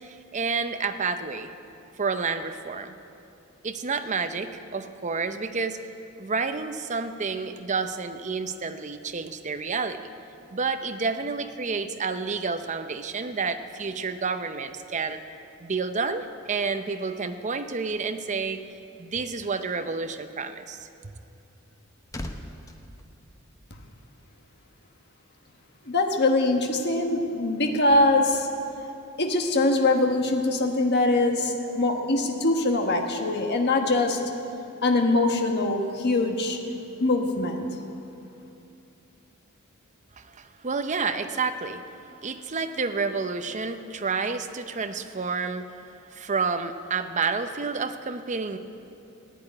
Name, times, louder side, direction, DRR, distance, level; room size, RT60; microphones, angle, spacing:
voice 1, 0.0-1.5 2.0-2.9 3.6-5.8 6.2-10.1 10.5-15.2 15.6-18.6 19.0-20.9 40.2-41.8 42.2-45.8 46.1-48.6, right 4 dB, 35° right, 9 dB, 0.6 m, -29 dB
sound 1, 21.6-24.1 24.3-24.6, left 1 dB, 15° left, 0.7 m, -41 dB
voice 2, 25.8-28.5 29.2-34.2 34.8-36.6 37.0-37.7, left 2 dB, 50° left, 3 dB, 1.4 m, -23 dB
15.0 x 8.8 x 9.7 m, 2.8 s
head